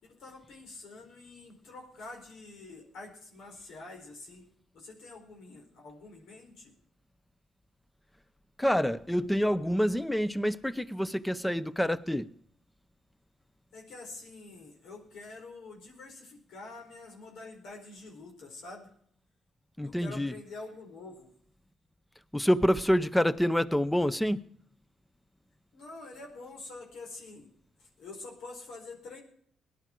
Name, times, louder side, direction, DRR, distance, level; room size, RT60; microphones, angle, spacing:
voice 1, 0.0-4.4 4.7-6.7 13.7-18.9 19.8-21.3 25.7-27.5 27.8-29.2, left 3 dB, 80° left, 4.5 m, -46 dB
voice 2, 8.6-12.3 19.8-20.3 22.3-24.4, equal, 5° left, 0.7 m, -27 dB
18.0 x 11.0 x 4.5 m
cardioid pair, 90°, 0 cm